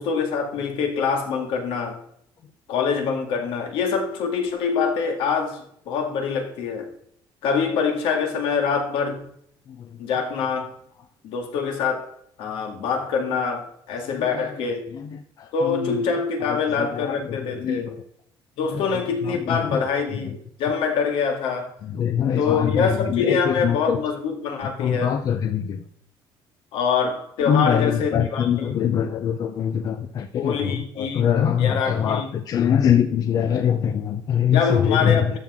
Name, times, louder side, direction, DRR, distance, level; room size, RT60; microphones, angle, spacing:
voice 1, 0.0-2.0 2.7-6.9 7.4-9.2 10.0-10.8 11.2-12.1 12.4-14.9 15.5-18.0 18.6-21.7 22.4-25.2 26.7-28.8 30.3-31.3 31.6-32.3 34.5-35.4, left 5 dB, 75° left, 2.1 m, -25 dB
voice 2, 15.6-16.0 16.8-17.2 17.6-18.0 19.2-19.9 21.9-24.0 24.8-25.8 27.5-35.3, left 8 dB, 45° left, 0.6 m, -23 dB
13.0 x 6.0 x 3.6 m
cardioid pair, 160°, 9 cm